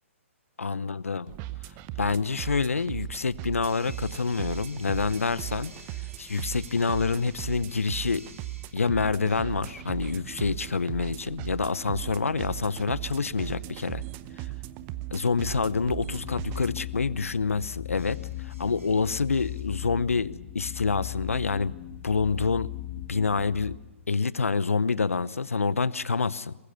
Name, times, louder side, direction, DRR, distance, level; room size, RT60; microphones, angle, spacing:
voice 1, 0.6-1.3 2.0-5.7 6.2-8.2 8.7-14.0 15.1-18.2 18.4-21.7 22.0-22.7 23.1-23.8 24.1-26.6, left 4 dB, 80° left, 18 dB, 0.8 m, -27 dB
sound 1, 1.3-16.8, right 15 dB, 30° right, 0.8 m, -38 dB
sound 2, 3.6-8.9 12.4-12.7 18.0-19.6, right 2 dB, 80° right, 7.1 m, -52 dB
sound 3, 15.6-23.8, left 15 dB, 40° left, 2.2 m, -38 dB
23.5 x 20.5 x 6.9 m, 1.1 s
figure-of-eight pair, 125°, 7 cm